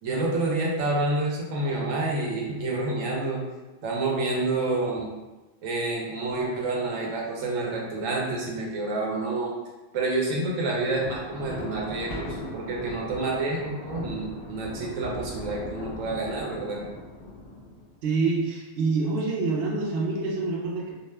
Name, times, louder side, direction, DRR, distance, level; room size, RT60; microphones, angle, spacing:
voice 1, 0.0-3.4 3.8-5.1 5.6-9.5 9.9-16.8, right 2 dB, 90° right, -2 dB, 1.0 m, -28 dB
Thunder, 10.9-18.0, left 1 dB, 40° left, 0.6 m, -39 dB
voice 2, 18.0-20.9, right 3 dB, 55° right, -3 dB, 0.7 m, -26 dB
2.4 x 2.3 x 3.2 m, 1.1 s
omnidirectional pair, 1.3 m